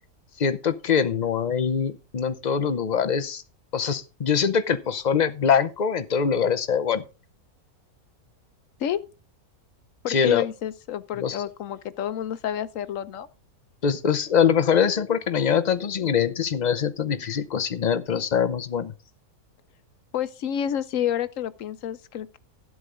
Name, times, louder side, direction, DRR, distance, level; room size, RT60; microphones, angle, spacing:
voice 1, 0.4-3.4 3.7-7.0 10.1-10.4 11.2-11.4 13.8-18.9, left 7 dB, 45° left, 0.6 m, -23 dB
voice 2, 10.0-13.3 20.1-22.4, left 10 dB, 65° left, 1.1 m, -29 dB
12.5 x 8.1 x 3.8 m
omnidirectional pair, 1.6 m